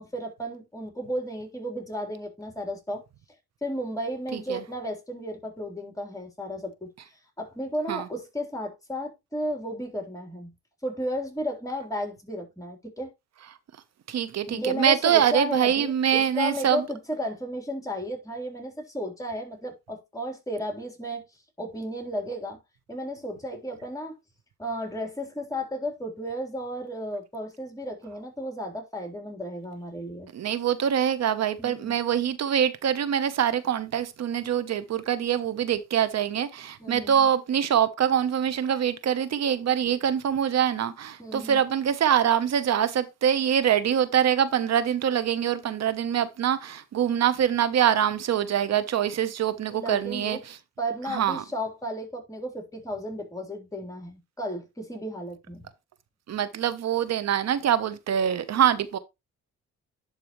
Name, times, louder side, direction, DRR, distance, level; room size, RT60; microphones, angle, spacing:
voice 1, 0.0-3.0 3.6-6.9 7.4-10.5 10.8-13.1 14.5-21.2 21.6-22.6 22.9-24.1 24.6-30.3 31.6-31.9 36.8-37.3 41.2-41.6 49.7-50.4 50.8-55.6, equal, 10° left, 3.7 m, -33 dB
voice 2, 14.1-16.8 30.3-50.4 51.1-51.4 56.3-59.0, right 9 dB, 60° right, 1.0 m, -24 dB
11.0 x 4.8 x 3.1 m
cardioid pair, 90°, 30 cm